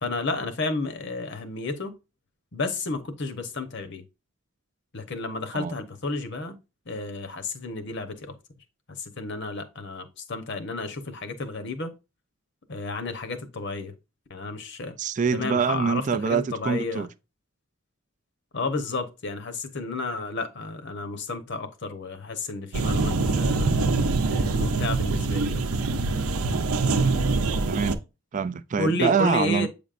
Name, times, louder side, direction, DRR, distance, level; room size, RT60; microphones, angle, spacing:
voice 1, 0.0-1.9 2.5-4.0 4.9-6.6 6.9-8.3 9.0-11.9 12.7-13.9 14.3-14.9 15.3-17.1 18.5-23.9 24.3-25.6 28.8-29.7, left 3 dB, 55° left, 0.9 m, -31 dB
voice 2, 15.0-17.1 27.7-28.0 28.3-29.7, right 6 dB, 35° right, 0.3 m, -25 dB
sound 1, 22.7-27.9, right 3 dB, 80° right, 0.7 m, -24 dB
8.1 x 5.2 x 2.5 m
head